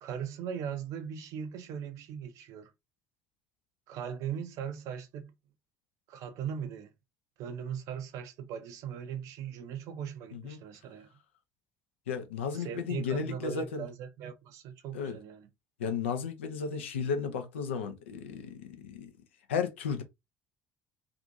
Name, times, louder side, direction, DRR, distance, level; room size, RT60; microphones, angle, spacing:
voice 1, 0.0-2.7 3.9-5.3 6.1-6.9 7.4-11.1 12.5-15.5, right 8 dB, 55° right, 0.5 m, -39 dB
voice 2, 12.1-13.9 14.9-15.2 15.8-19.1 19.5-20.0, left 6 dB, 75° left, 0.4 m, -34 dB
2.6 x 2.4 x 2.5 m
figure-of-eight pair, 55°, 7 cm